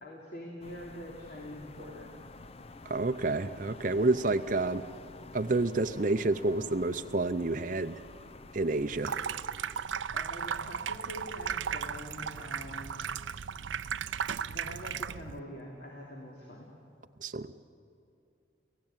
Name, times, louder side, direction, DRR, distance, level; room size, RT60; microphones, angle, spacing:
voice 1, 0.0-2.1 10.1-12.9 14.5-16.7, left 1 dB, 55° left, -2 dB, 3.1 m, -44 dB
sound 1, 0.6-9.4, left 3 dB, 30° left, 0.6 m, -50 dB
voice 2, 2.8-4.8 5.3-8.0 8.5-9.2 17.2-17.5, right 2 dB, 45° right, 8 dB, 0.6 m, -29 dB
Water tap faucet / Sink (filling or washing), 8.9-15.4, right 7 dB, 85° right, 0.5 m, -36 dB
29.5 x 16.0 x 9.0 m, 2.5 s
head